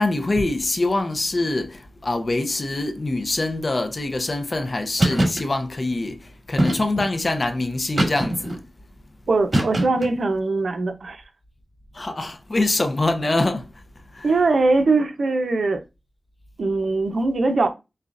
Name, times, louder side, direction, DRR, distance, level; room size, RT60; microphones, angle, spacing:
voice 1, 0.0-8.6 11.9-13.7 14.1-14.3, left 2 dB, 45° left, 0.7 m, -24 dB
sound 1, 5.0-5.4 6.6-7.1 8.0-8.6 9.5-10.2, right 1 dB, 40° right, 2.3 m, -22 dB
voice 2, 9.3-11.2 14.2-15.8 16.6-17.7, right 3 dB, 80° right, 0.8 m, -21 dB
6.6 x 2.3 x 2.5 m
wide cardioid pair, 70°, 0 cm